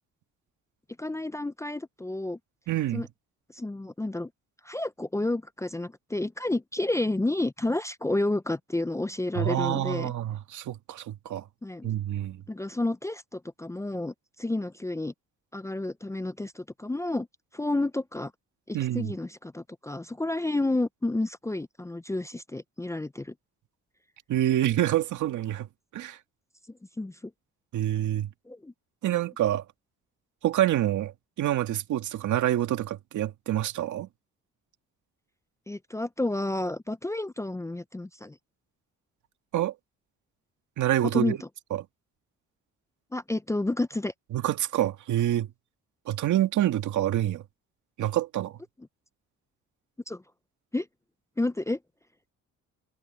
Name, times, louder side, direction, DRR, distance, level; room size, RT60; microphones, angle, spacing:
voice 1, 1.0-2.4 2.9-3.1 3.5-4.3 4.6-10.1 11.6-11.9 12.5-15.1 15.5-17.3 17.5-18.3 18.7-23.3 27.0-27.3 28.5-28.7 35.7-38.4 41.1-41.5 43.1-44.1 50.1-50.2 50.7-50.9 51.4-51.8, left 2 dB, 10° left, 0.5 m, -30 dB
voice 2, 2.7-3.1 9.4-11.4 11.8-12.4 18.7-19.1 24.3-25.7 25.9-26.2 27.7-28.3 29.0-29.6 30.4-31.1 31.4-34.1 39.5-39.7 40.8-41.4 41.7-41.8 44.3-45.5 46.1-47.4 48.0-48.6, right 12 dB, 75° right, 2.0 m, -27 dB
cardioid pair, 90°, 30 cm